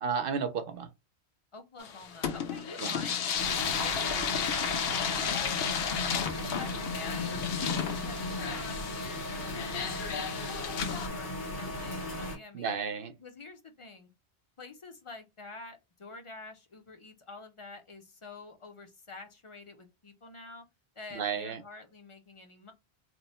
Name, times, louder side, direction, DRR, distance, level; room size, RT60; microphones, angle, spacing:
voice 1, 0.0-0.9 2.8-2.9 12.5-13.1 21.1-21.6, right 6 dB, 60° right, 0.8 m, -32 dB
voice 2, 1.5-6.0 6.4-7.4 7.9-12.8 13.2-14.1 14.6-20.7 21.0-22.7, left 3 dB, 40° left, 0.5 m, -48 dB
sound 1, 1.8-11.1, left 7 dB, 70° left, 0.8 m, -33 dB
sound 2, 3.3-12.4, left 1 dB, 90° left, 1.4 m, -37 dB
3.0 x 2.0 x 4.1 m
omnidirectional pair, 1.1 m